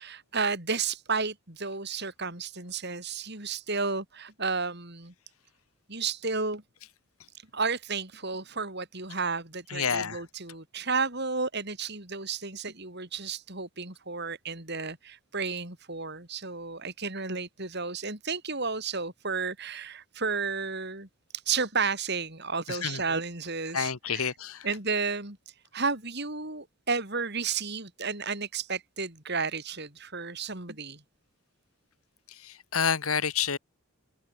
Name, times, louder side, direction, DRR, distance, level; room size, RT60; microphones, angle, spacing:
voice 1, 0.0-5.1 5.9-6.6 7.5-21.1 21.5-24.3 24.6-25.4 25.7-31.0, right 4 dB, 50° right, 4.7 m, -32 dB
voice 2, 9.7-10.2 22.7-23.0 23.7-24.7 32.4-33.6, left 7 dB, 75° left, 1.4 m, -29 dB
open air
head